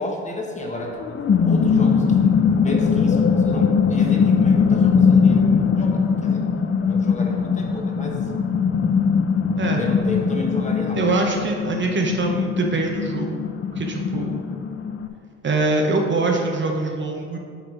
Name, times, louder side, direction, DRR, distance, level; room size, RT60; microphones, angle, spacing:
voice 1, 0.0-6.4 6.8-8.2 9.8-11.0, left 2 dB, 25° left, 0 dB, 1.3 m, -32 dB
sound 1, 0.8-15.1, left 6 dB, 45° left, 0.6 m, -20 dB
voice 2, 10.9-13.4 13.7-14.4 15.4-17.4, right 3 dB, 40° right, 1 dB, 0.9 m, -23 dB
7.1 x 4.3 x 5.2 m, 2.2 s
cardioid pair, 90°, 30 cm